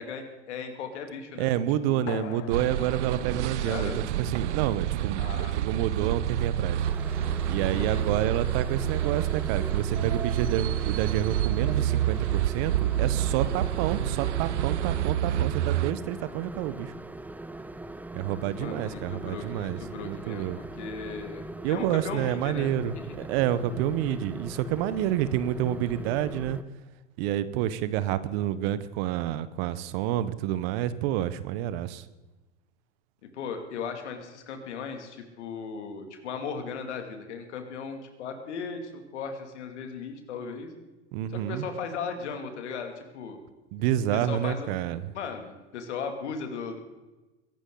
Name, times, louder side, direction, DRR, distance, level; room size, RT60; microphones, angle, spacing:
voice 1, 0.0-1.5 1.9-2.0 3.6-4.0 5.2-5.6 7.7-8.0 18.6-23.0 33.3-40.7 41.3-43.4 44.1-44.7 45.1-46.8, left 5 dB, 75° left, 6 dB, 2.6 m, -37 dB
voice 2, 1.4-6.8 7.5-16.9 18.1-20.6 21.6-23.0 23.3-26.6 27.2-32.0 41.1-41.7 43.7-45.1, right 11 dB, 60° right, 15 dB, 1.0 m, -29 dB
sound 1, 2.1-7.1, left 15 dB, 40° left, 0.5 m, -45 dB
sound 2, 2.5-15.9, right 11 dB, 85° right, 0.6 m, -28 dB
sound 3, 6.8-26.6, right 2 dB, 5° right, 0.6 m, -41 dB
22.0 x 11.5 x 3.9 m, 1.2 s
hypercardioid pair, 85°, 35 cm